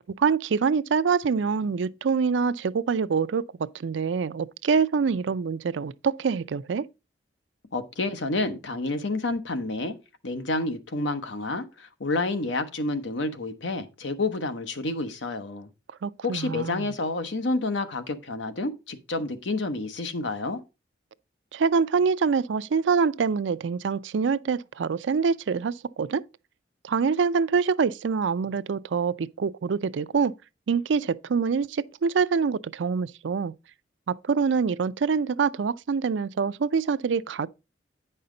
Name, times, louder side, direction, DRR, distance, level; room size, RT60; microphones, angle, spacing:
voice 1, 0.2-3.4 3.7-6.8 16.0-16.9 21.5-26.2 26.8-30.3 30.7-33.5 34.1-37.5, right 5 dB, 85° right, 0.4 m, -25 dB
voice 2, 7.7-9.9 10.2-15.7 16.2-20.6, left 2 dB, 90° left, 1.0 m, -29 dB
9.4 x 5.5 x 3.8 m
head